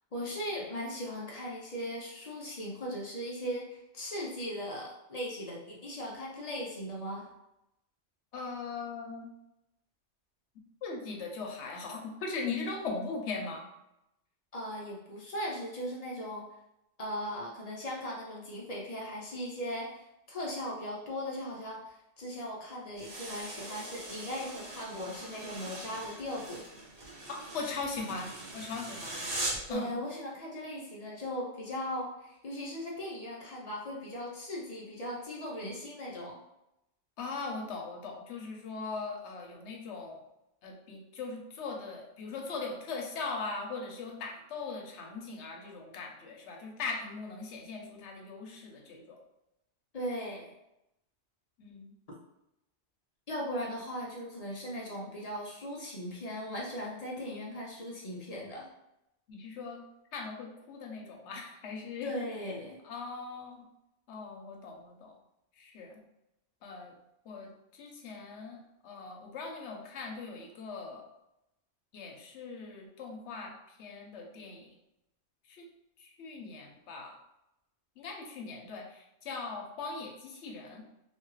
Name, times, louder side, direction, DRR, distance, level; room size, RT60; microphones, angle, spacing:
voice 1, 0.1-7.3 14.5-16.5 17.0-26.6 29.7-36.4 49.9-50.5 53.3-58.7 62.0-62.8, equal, 45° left, -3 dB, 0.5 m, -38 dB
voice 2, 8.3-9.3 10.8-13.7 27.3-29.3 29.7-30.0 37.2-40.2 40.6-49.2 51.6-51.9 59.3-59.8 60.1-62.1 62.8-63.7 64.1-65.1 65.6-66.0 66.6-66.9 67.2-71.0 71.9-74.7 75.5-75.6 76.0-77.2 78.0-80.8, left 4 dB, 75° left, 1 dB, 0.9 m, -40 dB
sound 1, 23.0-29.7, right 1 dB, 55° right, 0.9 m, -41 dB
2.6 x 2.3 x 3.0 m, 0.87 s
omnidirectional pair, 1.2 m